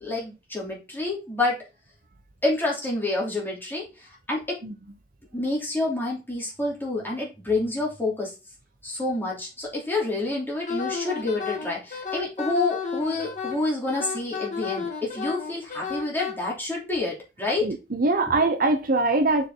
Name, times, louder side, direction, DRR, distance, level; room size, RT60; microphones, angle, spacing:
voice 1, 0.0-1.6 2.4-4.6 5.3-8.3 8.8-17.7, left 2 dB, 10° left, -4 dB, 3.2 m, -28 dB
Wind instrument woodwind instrument, 10.6-16.3, left 6 dB, 45° left, 2.1 m, -32 dB
voice 2, 17.6-19.5, right 2 dB, 50° right, 6 dB, 0.9 m, -22 dB
6.5 x 5.2 x 3.8 m, 0.27 s
head